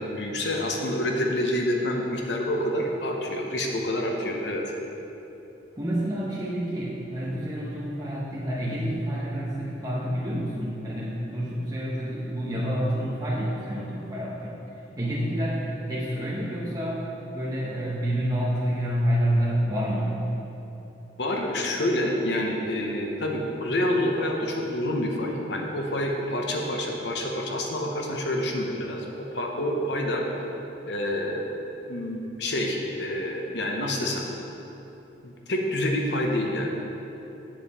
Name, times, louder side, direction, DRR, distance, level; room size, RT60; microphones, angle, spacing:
voice 1, 0.0-4.7 21.2-30.2 30.8-31.5 31.9-34.3 35.2-36.8, left 1 dB, 65° left, 1 dB, 0.9 m, -27 dB
voice 2, 5.8-14.6 15.0-17.1 17.3-20.3, equal, 20° right, -7 dB, 0.9 m, -28 dB
7.4 x 7.3 x 4.2 m, 2.9 s
head